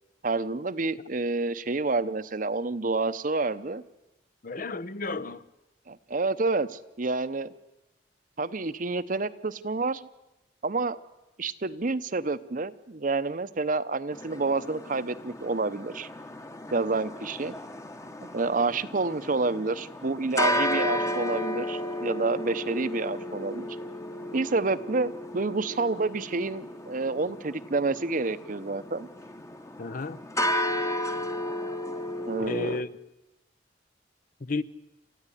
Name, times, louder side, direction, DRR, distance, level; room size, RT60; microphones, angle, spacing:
voice 1, 0.2-3.8 5.9-7.5 8.4-10.1 10.6-11.0 11.4-16.1 16.7-17.5 18.3-23.8 24.3-29.1 32.2-32.8, right 3 dB, 50° right, 0.8 m, -29 dB
voice 2, 4.4-5.4 29.8-30.2 32.4-32.9 34.4-34.6, left 3 dB, 50° left, 0.8 m, -32 dB
sound 1, 14.1-32.8, left 1 dB, 15° left, 1.1 m, -33 dB
28.5 x 14.5 x 10.0 m
head